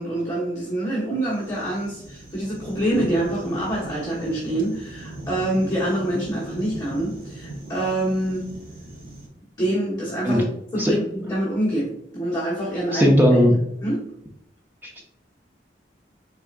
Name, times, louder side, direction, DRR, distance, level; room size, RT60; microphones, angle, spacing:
voice 1, 0.0-8.5 9.6-10.4 10.7-13.1 13.5-14.0, right 1 dB, 20° left, -8 dB, 1.1 m, -26 dB
sound 1, 1.3-9.3, right 1 dB, 50° right, 1.3 m, -38 dB
voice 2, 12.9-13.5 14.8-15.0, equal, 10° right, 0 dB, 0.5 m, -17 dB
4.6 x 3.4 x 2.4 m, 0.77 s
head